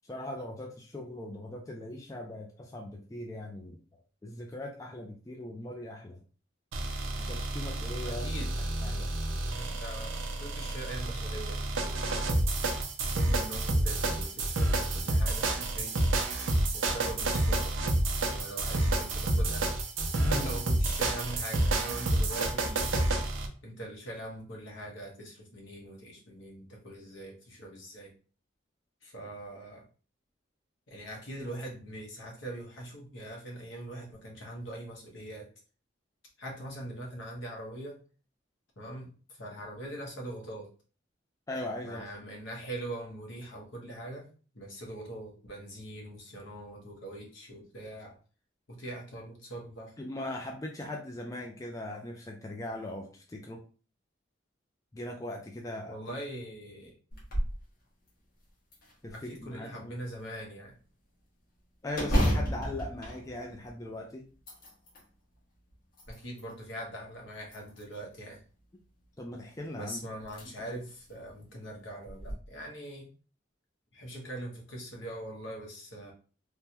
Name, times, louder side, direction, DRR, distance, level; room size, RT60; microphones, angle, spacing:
voice 1, 0.0-3.8 4.2-6.2 7.2-8.3 8.8-9.1 20.2-20.5 41.5-42.3 50.0-53.6 54.9-56.0 59.0-60.0 61.8-64.2 69.2-70.0 70.7-70.8, left 1 dB, 15° left, 1 dB, 0.4 m, -39 dB
sound 1, 6.7-23.5, right 2 dB, 85° right, 0.6 m, -29 dB
voice 2, 8.0-8.5 9.5-12.4 13.1-16.0 16.7-17.8 18.3-19.7 20.3-23.1 23.6-28.1 29.0-29.8 30.9-35.5 36.4-38.0 38.8-40.7 41.8-44.3 44.5-48.1 48.7-49.9 55.9-56.9 59.1-60.8 66.1-68.4 69.7-73.1 73.9-76.1, right 1 dB, 70° left, -1 dB, 1.0 m, -42 dB
sound 2, 57.1-57.6 58.1-58.2 58.7-59.5 61.9-63.9 64.3-65.1 65.7-66.6 67.5-68.1 69.6-69.7 70.2-70.5 70.9-71.0 72.1-72.3, equal, 50° left, 1.1 m, -32 dB
3.3 x 2.2 x 2.8 m, 0.38 s
head